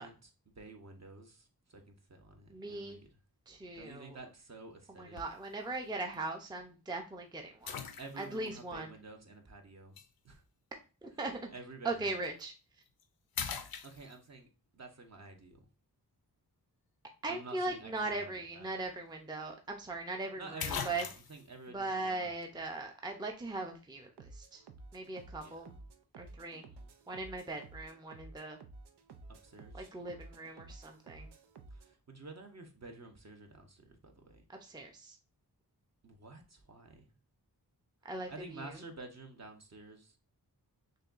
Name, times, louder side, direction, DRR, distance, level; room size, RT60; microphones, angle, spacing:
voice 1, 0.0-3.2 3.7-5.2 8.0-10.0 10.2-10.4 11.5-12.1 13.8-14.5 14.7-15.7 17.3-18.7 20.4-22.3 25.4-25.7 26.5-26.9 29.3-30.0 31.7-34.4 36.0-37.1 38.3-40.2, right 3 dB, 45° right, 0.8 m, -51 dB
voice 2, 2.5-3.0 3.5-4.2 5.0-7.8 8.2-8.9 11.0-11.5 11.8-12.5 17.2-21.0 21.7-24.6 24.9-25.7 26.2-26.7 27.1-28.6 29.7-31.3 34.5-35.2 38.0-38.7, right 2 dB, 10° right, 0.5 m, -39 dB
sound 1, 5.2-5.5 6.1-6.2 7.7-8.5 10.0-10.1 12.2-12.4 12.9-13.0 13.3-14.4 18.5-18.6 18.9-19.0 20.1-20.2 20.6-21.5, left 7 dB, 65° left, 0.5 m, -40 dB
sound 2, 24.2-31.9, right 3 dB, 90° right, 0.6 m, -53 dB
6.4 x 2.3 x 2.4 m
wide cardioid pair, 85°, 39 cm